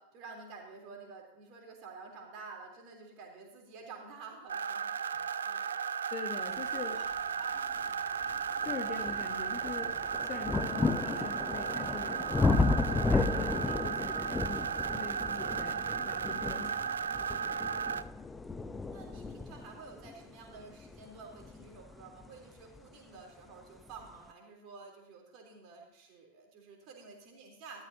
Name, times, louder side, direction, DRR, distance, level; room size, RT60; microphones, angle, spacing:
voice 1, 0.0-5.7 6.5-7.9 15.4-15.8 18.9-27.8, right 4 dB, 40° right, 0 dB, 3.5 m, -51 dB
sound 1, 4.5-18.0, right 7 dB, 70° right, 0.4 m, -35 dB
voice 2, 6.1-7.0 8.6-12.6 12.9-17.2, left 5 dB, 30° left, 5 dB, 1.1 m, -43 dB
sound 2, 7.6-7.7 8.2-22.9 23.8-23.9, left 3 dB, 10° left, 0.6 m, -34 dB
14.0 x 13.0 x 2.8 m, 0.87 s
figure-of-eight pair, 90°, 0 cm